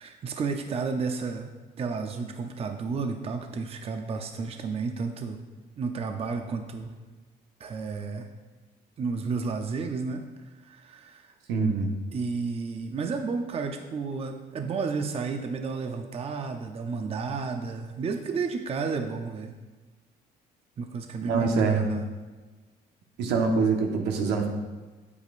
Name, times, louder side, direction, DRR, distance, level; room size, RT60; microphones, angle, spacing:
voice 1, 0.0-1.5 1.8-5.4 5.8-6.9 7.6-8.3 9.0-10.2 10.6-11.3 12.1-19.5 20.8-22.1, right 4 dB, 35° right, 5 dB, 0.6 m, -32 dB
voice 2, 11.5-11.9 21.2-21.9 23.2-24.5, right 4 dB, 85° right, 2 dB, 1.1 m, -24 dB
8.8 x 8.4 x 2.5 m, 1.3 s
cardioid pair, 110°, 17 cm